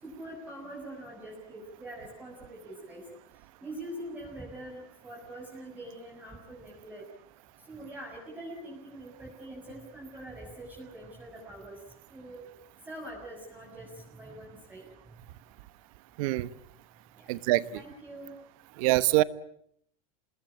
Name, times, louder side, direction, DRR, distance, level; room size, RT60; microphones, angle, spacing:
voice 1, 0.0-3.0 3.6-7.0 7.7-11.7 12.1-12.5 12.9-14.8 17.2-17.4 17.7-18.3, right 1 dB, 10° right, -1 dB, 6.6 m, -44 dB
voice 2, 17.3-17.6 18.8-19.2, right 18 dB, 70° right, 16 dB, 1.2 m, -24 dB
27.0 x 21.0 x 8.6 m, 0.70 s
supercardioid pair, 145°, 18 cm